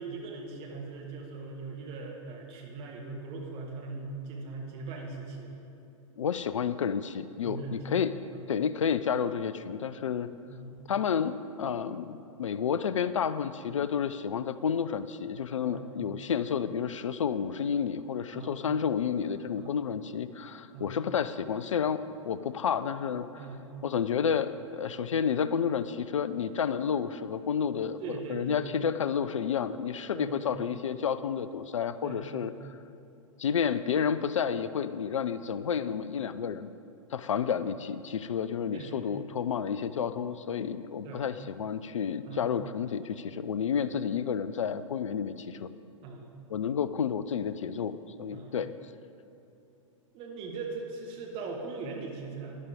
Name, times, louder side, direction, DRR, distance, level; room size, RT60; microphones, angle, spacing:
voice 1, 0.0-5.6 7.4-7.8 8.3-8.4 10.5-10.7 15.6-15.9 18.3-18.5 19.6-19.7 20.7-20.9 23.3-23.6 28.0-28.6 30.1-30.4 32.0-32.4 37.3-37.5 38.7-38.9 41.0-41.2 42.2-42.5 46.0-46.3 48.3-48.5 50.1-52.6, right 3 dB, 30° right, 0 dB, 1.7 m, -40 dB
voice 2, 6.2-8.1 8.5-10.3 10.9-23.3 23.8-28.0 28.3-32.8 33.4-36.7 37.1-45.7 46.5-48.7, left 7 dB, 65° left, 14 dB, 0.4 m, -30 dB
13.0 x 10.0 x 3.6 m, 2.8 s
figure-of-eight pair, 100°, 17 cm